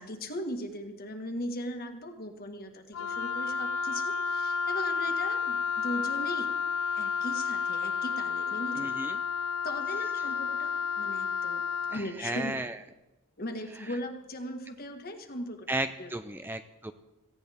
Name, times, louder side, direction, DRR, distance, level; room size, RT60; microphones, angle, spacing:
voice 1, 0.0-6.5 6.9-8.9 9.6-11.6 11.9-12.7 13.4-15.7 16.0-16.1, left 1 dB, 45° left, 5 dB, 1.6 m, -38 dB
Wind instrument woodwind instrument, 2.9-12.0, left 6 dB, 70° left, 0.6 m, -31 dB
voice 2, 8.8-9.2 11.9-12.8 13.9-14.0 15.7-16.9, right 2 dB, 10° right, 9 dB, 0.5 m, -34 dB
18.5 x 16.0 x 3.6 m, 0.99 s
head